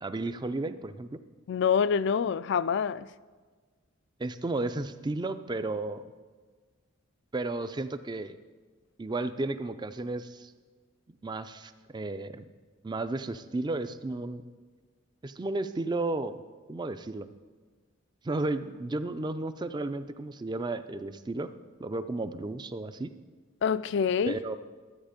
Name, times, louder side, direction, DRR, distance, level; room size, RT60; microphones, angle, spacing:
voice 1, 0.0-1.2 4.2-6.0 7.3-8.4 9.0-10.5 11.2-12.4 12.8-14.4 15.2-16.4 16.7-17.3 18.2-21.5 21.8-23.1 24.2-24.6, right 2 dB, 20° right, 0.4 m, -33 dB
voice 2, 1.5-3.1 23.6-24.4, left 6 dB, 60° left, 0.3 m, -26 dB
12.5 x 8.0 x 5.1 m
head